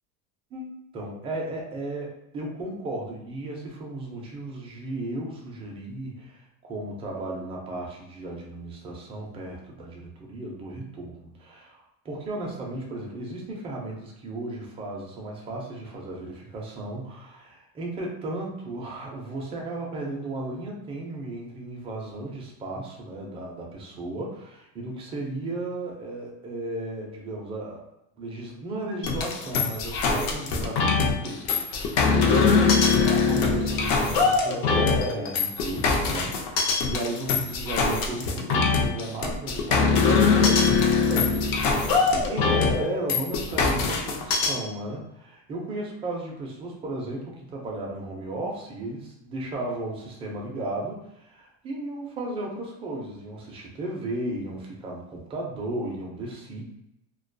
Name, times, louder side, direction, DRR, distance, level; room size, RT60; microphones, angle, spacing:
voice 1, 0.5-27.9 28.2-56.6, right 2 dB, 15° right, -2 dB, 0.3 m, -35 dB
sound 1, 29.0-44.5, left 4 dB, 60° left, 0.5 m, -22 dB
2.2 x 2.2 x 2.5 m, 0.82 s
cardioid pair, 160°, 34 cm